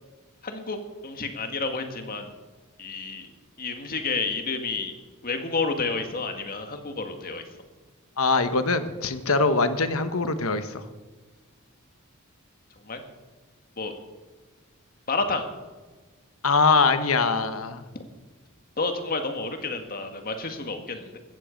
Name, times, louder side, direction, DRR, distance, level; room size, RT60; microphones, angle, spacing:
voice 1, 0.4-2.3 2.8-3.3 3.6-4.9 5.2-7.4 12.8-13.0 13.8-13.9 15.1-15.4 18.8-21.2, left 4 dB, 45° left, 6 dB, 1.8 m, -30 dB
voice 2, 8.2-10.8 16.4-17.8, left 4 dB, 75° left, 10 dB, 1.2 m, -23 dB
15.5 x 14.5 x 5.2 m, 1.3 s
head